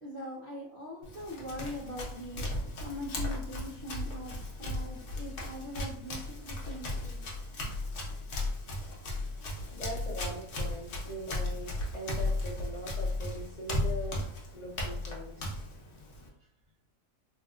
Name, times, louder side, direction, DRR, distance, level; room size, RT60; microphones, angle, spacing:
voice 1, 0.0-2.5 2.8-7.5, left 1 dB, 50° right, -8 dB, 0.8 m, -42 dB
Run, 1.0-16.3, left 2 dB, 60° left, 1.0 m, -36 dB
voice 2, 9.7-14.2 14.5-15.5, equal, 90° left, -5 dB, 0.3 m, -41 dB
3.4 x 2.4 x 2.3 m, 0.71 s
omnidirectional pair, 1.5 m